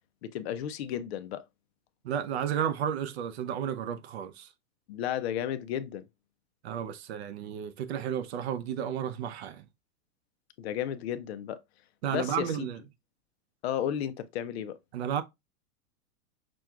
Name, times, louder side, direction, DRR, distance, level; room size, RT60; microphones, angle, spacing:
voice 1, 0.2-1.4 4.9-6.1 10.6-11.6 12.1-12.7 13.6-14.8, left 10 dB, 50° left, 0.4 m, -33 dB
voice 2, 2.0-4.5 6.6-9.6 12.0-12.8 14.9-15.2, right 9 dB, 50° right, 0.4 m, -32 dB
6.0 x 2.3 x 2.3 m
supercardioid pair, 160°, 45 cm